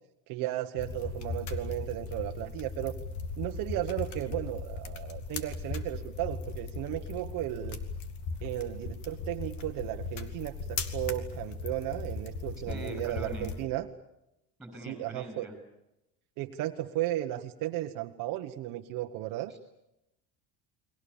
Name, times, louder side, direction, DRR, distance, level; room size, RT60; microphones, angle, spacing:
voice 1, 0.3-2.9 3.4-7.8 8.4-13.9 14.9-15.5 16.4-19.5, right 15 dB, 60° right, 5 dB, 1.3 m, -35 dB
sound 1, 0.8-13.6, left 4 dB, 50° left, 2.6 m, -38 dB
voice 2, 12.7-13.5 14.6-15.5 19.5-19.6, equal, ahead, 6 dB, 7.3 m, -42 dB
30.0 x 23.0 x 7.2 m, 0.86 s
cardioid pair, 165°, 39 cm